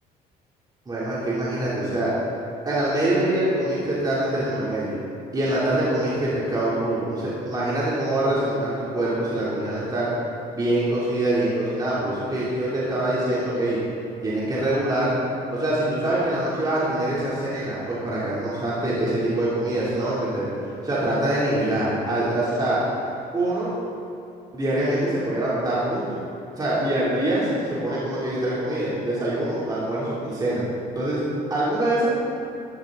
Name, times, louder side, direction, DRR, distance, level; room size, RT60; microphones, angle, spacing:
voice 1, 0.9-2.1 2.7-5.0 5.3-10.1 10.5-13.8 14.2-15.1 15.5-20.5 20.8-22.8 23.3-23.7 24.5-26.2 26.6-30.6 31.0-31.2 31.5-32.1, right 1 dB, 25° right, -9 dB, 3.3 m, -24 dB
13.5 x 12.0 x 4.0 m, 2.7 s
cardioid pair, 110°, 17 cm